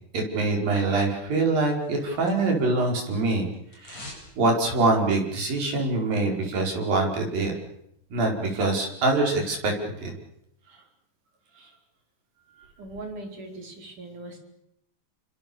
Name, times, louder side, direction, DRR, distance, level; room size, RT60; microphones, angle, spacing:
voice 1, 0.1-3.5 3.8-4.1 4.4-7.5 8.1-10.1 11.6-11.7, right 3 dB, 90° right, 1 dB, 6.9 m, -24 dB
sound 1, 1.5-2.8 3.0-4.3 4.6-4.7, left 1 dB, 40° left, 8.9 m, -45 dB
voice 2, 4.0-4.4 12.8-14.4, right 2 dB, 65° right, 3 dB, 6.2 m, -40 dB
29.5 x 25.0 x 7.2 m, 0.81 s
omnidirectional pair, 3.9 m